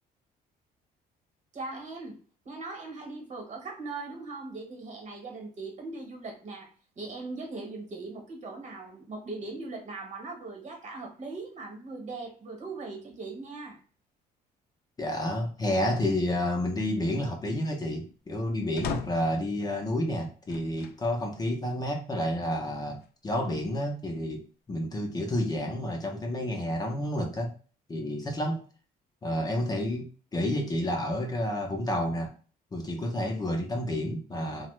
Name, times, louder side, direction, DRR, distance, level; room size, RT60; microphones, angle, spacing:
voice 1, 1.5-2.2 2.4-6.7 7.0-13.8, right 3 dB, 45° right, 2 dB, 1.1 m, -39 dB
voice 2, 15.0-27.6 27.9-28.6 29.2-32.3 32.7-34.7, left 1 dB, 25° left, 2 dB, 0.6 m, -30 dB
sound 1, 18.8-19.4 20.5-21.0 21.7-21.8 23.0-23.8, left 7 dB, 70° left, 0.4 m, -38 dB
2.9 x 2.1 x 3.1 m, 0.38 s
cardioid pair, 110°, 17 cm